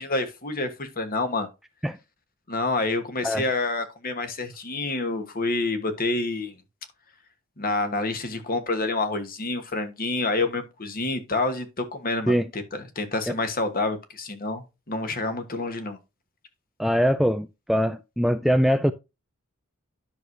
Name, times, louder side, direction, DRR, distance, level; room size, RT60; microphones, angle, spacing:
voice 1, 0.0-1.5 2.5-6.6 7.6-16.0, left 3 dB, 40° left, 1.3 m, -28 dB
voice 2, 16.8-18.9, equal, ahead, 0.3 m, -22 dB
10.5 x 6.2 x 2.7 m
head